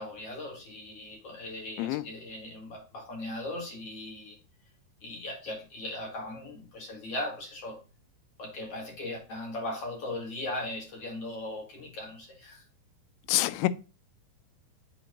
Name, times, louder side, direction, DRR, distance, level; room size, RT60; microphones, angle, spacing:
voice 1, 0.0-4.4 5.0-7.8 8.4-12.6, left 1 dB, 45° left, 2.3 m, -38 dB
voice 2, 13.3-13.7, left 17 dB, 90° left, 2.9 m, -26 dB
7.1 x 4.5 x 3.9 m
omnidirectional pair, 5.2 m